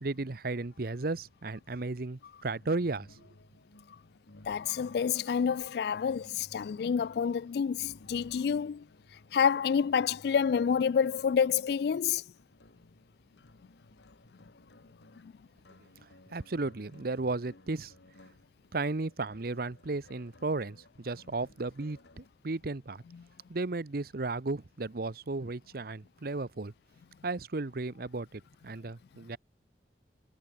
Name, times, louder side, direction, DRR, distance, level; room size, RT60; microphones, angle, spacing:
voice 1, 0.0-3.2 16.3-17.9 18.7-23.0 23.5-26.7 27.2-29.4, right 3 dB, 55° right, 0.8 m, -34 dB
sound 1, 2.5-22.3, left 1 dB, 85° left, 2.1 m, -58 dB
voice 2, 4.5-8.8 9.3-12.2, left 7 dB, 65° left, 0.3 m, -28 dB
head